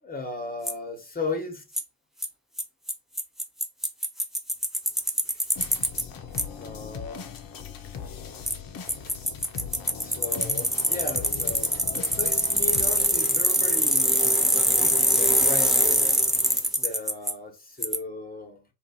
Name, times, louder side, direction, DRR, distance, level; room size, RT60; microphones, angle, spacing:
voice 1, 0.0-1.6 6.6-7.2 9.1-9.2 10.0-14.1 14.7-16.2 16.7-18.6, left 3 dB, 20° left, 1.2 m, -36 dB
Bicycle, 0.7-0.8 1.8-1.9 2.2-2.3 2.6-2.7 2.9-3.0 3.2-6.0 6.4-6.5 8.5-8.6 8.9-17.3 17.8-18.0, equal, ahead, 0.3 m, -23 dB
sound 1, 5.5-13.1, left 7 dB, 45° left, 0.7 m, -39 dB
2.5 x 2.4 x 2.8 m
figure-of-eight pair, 40°, 47 cm